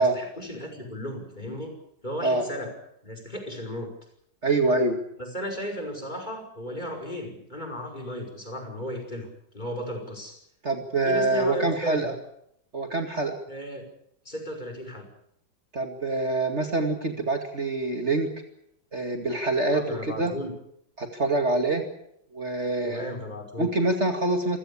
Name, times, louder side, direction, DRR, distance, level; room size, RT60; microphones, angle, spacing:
voice 1, 0.0-1.8 2.0-2.7 3.0-3.9 5.2-9.3 9.5-10.4 11.0-12.2 13.5-13.9 14.2-15.1 19.7-20.6 22.8-23.8, equal, 25° left, 3 dB, 5.7 m, -35 dB
voice 2, 4.4-5.0 10.6-12.1 12.7-13.4 15.7-18.3 18.9-19.8 20.2-20.3 21.0-21.9 22.3-23.1 23.6-24.6, right 2 dB, 40° right, 4 dB, 2.5 m, -25 dB
27.5 x 16.5 x 8.5 m, 0.75 s
omnidirectional pair, 1.9 m